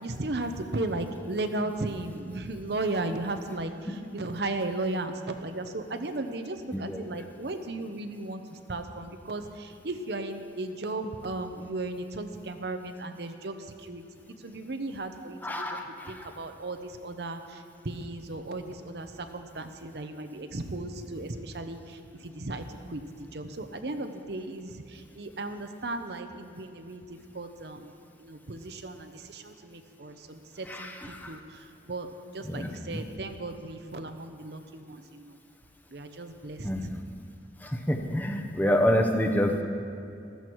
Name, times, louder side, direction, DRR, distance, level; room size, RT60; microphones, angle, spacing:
voice 1, 0.0-14.0 14.4-27.9 28.2-32.1 32.3-35.4 35.9-36.9, right 2 dB, 65° right, 7 dB, 0.8 m, -36 dB
voice 2, 15.4-16.1 30.7-31.4 32.5-32.7 36.6-37.0 37.6-39.6, equal, 10° left, 3 dB, 0.9 m, -27 dB
15.0 x 13.5 x 4.7 m, 2.5 s
head